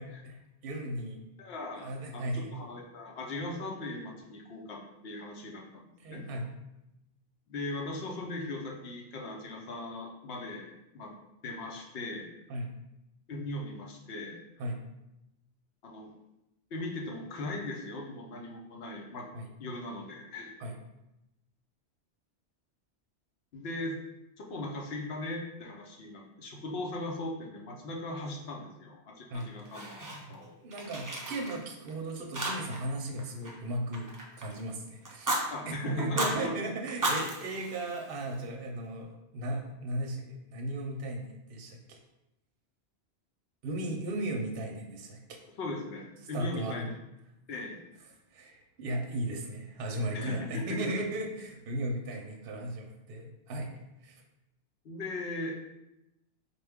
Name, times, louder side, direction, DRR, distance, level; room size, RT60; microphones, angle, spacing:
voice 1, 0.0-1.2 1.8-2.6 6.0-6.5 12.5-12.8 14.6-14.8 19.3-19.5 20.6-20.7 29.3-29.5 30.6-34.1 34.4-42.0 43.6-45.4 46.3-46.9 48.3-53.7 54.0-54.2, right 1 dB, 60° right, 1 dB, 0.7 m, -36 dB
voice 2, 1.4-6.2 7.5-11.1 11.4-12.3 13.3-14.4 15.8-16.1 16.7-19.3 19.6-20.5 23.5-24.0 24.4-30.5 35.5-36.5 45.6-46.9 47.5-47.8 50.1-50.9 54.8-55.6, left 2 dB, 65° left, 0 dB, 0.9 m, -39 dB
Fire, 29.3-30.4 30.7-31.9 32.3-32.9 33.2-34.6 35.0-35.4 36.0-36.4 36.9-38.4, right 1 dB, 35° right, 0.3 m, -34 dB
4.2 x 2.2 x 3.4 m, 0.91 s
omnidirectional pair, 1.1 m